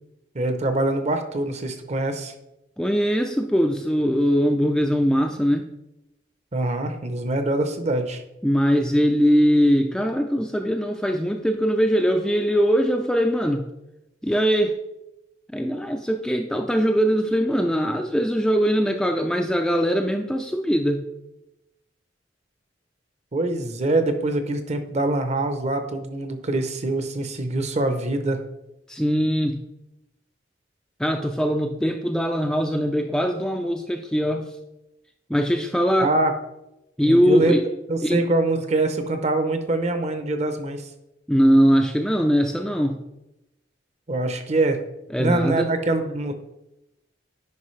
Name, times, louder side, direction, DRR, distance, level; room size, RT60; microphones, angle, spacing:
voice 1, 0.3-2.3 6.5-8.2 23.3-28.4 36.0-36.3 37.0-37.6 37.9-40.9 44.1-44.8 45.2-46.3, right 2 dB, 35° right, 8 dB, 0.7 m, -24 dB
voice 2, 2.8-5.7 8.4-13.7 14.2-14.8 15.5-21.0 28.9-29.7 31.0-34.5 35.3-36.1 37.0-37.6 38.0-38.2 41.3-43.0 45.1-45.7, equal, 5° left, 4 dB, 0.3 m, -21 dB
9.6 x 5.3 x 3.2 m, 0.91 s
head